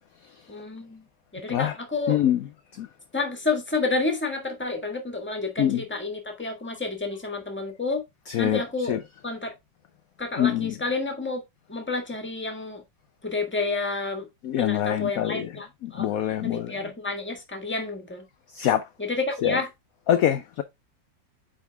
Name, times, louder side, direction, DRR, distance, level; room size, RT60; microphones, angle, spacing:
voice 1, 0.5-1.0 1.3-2.2 3.1-8.0 8.4-9.0 9.2-9.5 10.2-11.4 11.7-12.8 13.2-14.3 14.6-16.1 16.4-18.2 19.0-19.7, left 3 dB, 5° left, 1.2 m, -30 dB
voice 2, 2.1-2.4 2.8-2.9 5.6-5.8 8.3-8.6 8.9-9.0 10.4-10.7 14.4-15.5 15.8-16.7 18.6-18.8 19.4-19.6 20.1-20.6, left 11 dB, 70° left, 0.8 m, -24 dB
9.1 x 3.7 x 3.4 m
omnidirectional pair, 2.0 m